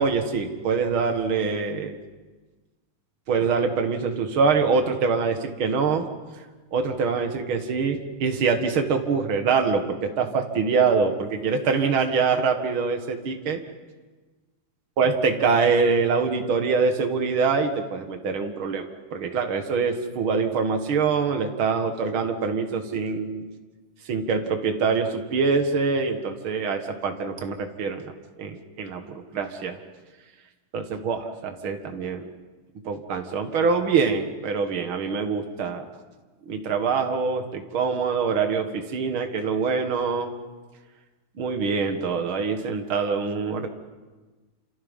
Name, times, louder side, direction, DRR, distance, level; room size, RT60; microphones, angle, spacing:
voice 1, 0.0-2.0 3.3-6.1 6.7-13.6 15.0-23.4 24.1-28.1 28.4-29.8 30.7-32.3 32.8-35.8 36.5-40.3 41.4-43.7, right 5 dB, 45° right, 5 dB, 1.8 m, -24 dB
28.5 x 27.5 x 5.6 m, 1.3 s
omnidirectional pair, 4.6 m